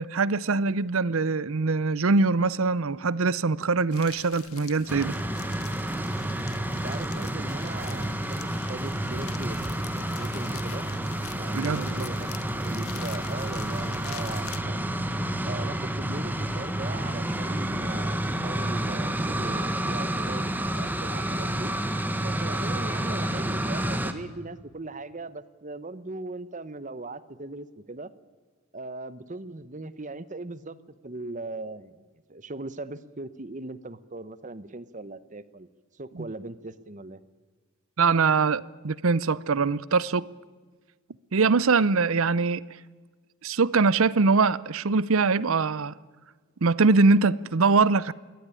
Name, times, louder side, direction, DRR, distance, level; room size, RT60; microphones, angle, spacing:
voice 1, 0.0-5.2 11.5-12.0 38.0-40.3 41.3-42.7 43.4-45.9 46.6-48.1, right 4 dB, 70° right, 0.7 m, -23 dB
sound 1, 3.9-14.6, left 10 dB, 80° left, 1.1 m, -46 dB
sound 2, 4.9-24.1, right 1 dB, 10° right, 1.2 m, -29 dB
voice 2, 6.7-10.9 11.4-12.3 12.6-14.9 15.5-21.7 22.2-28.1 28.7-30.8 31.0-35.7 35.9-37.2, right 2 dB, 35° right, 0.9 m, -39 dB
sound 3, 7.5-8.9 9.4-11.9, left 1 dB, 10° left, 3.2 m, -54 dB
22.5 x 17.5 x 9.8 m
head